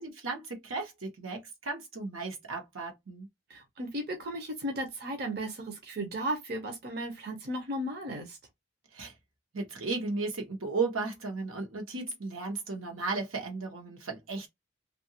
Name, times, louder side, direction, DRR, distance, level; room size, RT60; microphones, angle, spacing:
voice 1, 0.0-3.3 8.9-9.1 9.5-14.5, right 3 dB, 80° right, 1.1 m, -35 dB
voice 2, 3.5-8.4, right 1 dB, 50° right, 0.7 m, -35 dB
2.8 x 2.5 x 2.8 m
head